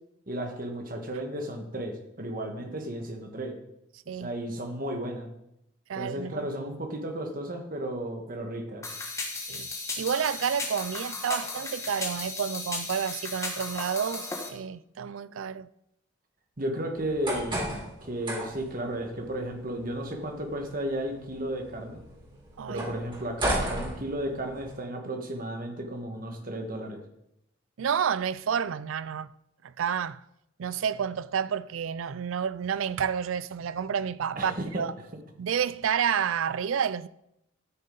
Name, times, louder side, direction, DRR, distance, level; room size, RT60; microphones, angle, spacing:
voice 1, 0.3-3.6 4.0-5.3 5.9-8.9 16.6-22.0 22.7-27.0 34.3-34.8, right 1 dB, 45° right, 1.5 m, -34 dB
voice 2, 5.9-6.5 9.3-15.7 22.6-22.9 23.6-24.1 27.8-29.3 29.8-30.2 30.6-34.9 35.4-37.1, right 7 dB, 85° right, 0.4 m, -30 dB
sound 1, 8.8-14.5, left 3 dB, 15° left, 1.2 m, -35 dB
sound 2, 17.0-24.7, right 1 dB, 25° right, 3.4 m, -36 dB
13.0 x 6.6 x 3.9 m
head